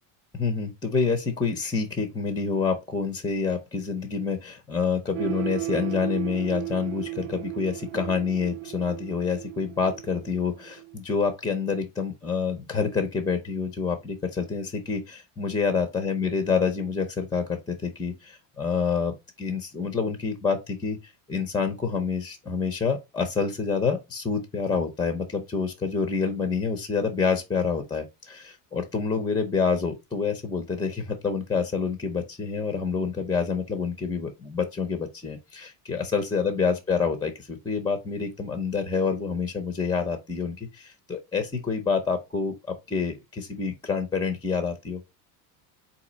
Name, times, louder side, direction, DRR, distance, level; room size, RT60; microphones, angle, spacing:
voice 1, 0.3-45.0, left 5 dB, 10° left, 0.5 m, -27 dB
sound 1, 5.1-11.0, right 21 dB, 85° right, 0.6 m, -35 dB
4.2 x 2.7 x 3.8 m
cardioid pair, 130°, 47 cm